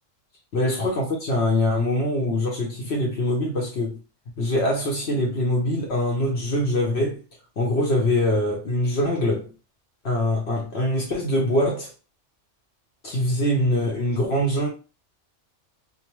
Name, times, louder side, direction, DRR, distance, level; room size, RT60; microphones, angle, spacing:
voice 1, 0.5-4.0 4.4-7.2 7.6-9.5 10.0-11.9 13.0-14.7, left 1 dB, 65° left, 1.0 m, -23 dB
2.7 x 2.1 x 2.9 m
omnidirectional pair, 1.2 m